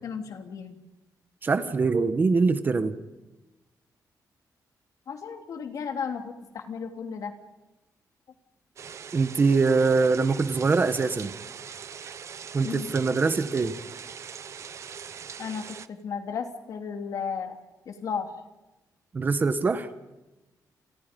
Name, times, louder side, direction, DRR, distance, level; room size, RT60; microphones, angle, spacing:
voice 1, 0.0-0.8 5.1-7.3 12.6-12.9 15.4-17.6 17.8-18.3, left 6 dB, 55° left, 5 dB, 3.3 m, -34 dB
voice 2, 1.4-3.0 9.1-11.3 12.5-13.7 19.1-19.9, right 4 dB, 30° right, 10 dB, 1.4 m, -23 dB
sound 1, 8.8-15.9, right 7 dB, 45° right, 1.0 m, -41 dB
30.0 x 30.0 x 5.4 m, 1.1 s
wide cardioid pair, 175°, 7 cm